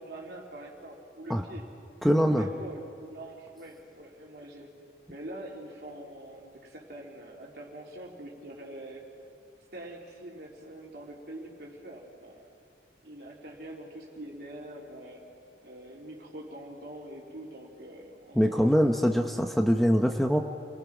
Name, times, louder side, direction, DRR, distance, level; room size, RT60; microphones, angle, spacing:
voice 1, 0.0-1.6 2.2-4.7 5.1-9.1 9.7-12.5 13.0-15.3 15.6-18.7 18.9-19.4, right 1 dB, 60° right, -2 dB, 3.7 m, -44 dB
voice 2, 2.0-2.5 18.4-20.4, equal, ahead, 4 dB, 0.8 m, -23 dB
29.5 x 21.5 x 6.1 m, 2.4 s
head